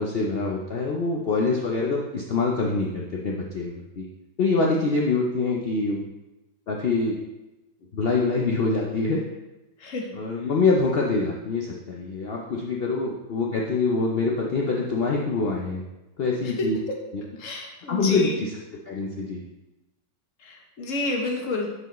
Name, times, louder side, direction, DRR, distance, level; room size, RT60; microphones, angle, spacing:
voice 1, 0.0-4.1 4.4-6.0 6.7-7.2 7.9-9.2 10.1-15.8 16.2-16.8 17.1-17.2 17.9-19.4, left 3 dB, 70° left, -2 dB, 0.5 m, -25 dB
voice 2, 17.4-18.4 20.4-21.7, left 3 dB, 50° left, 1 dB, 1.3 m, -29 dB
9.8 x 4.6 x 3.0 m, 1.0 s
omnidirectional pair, 1.9 m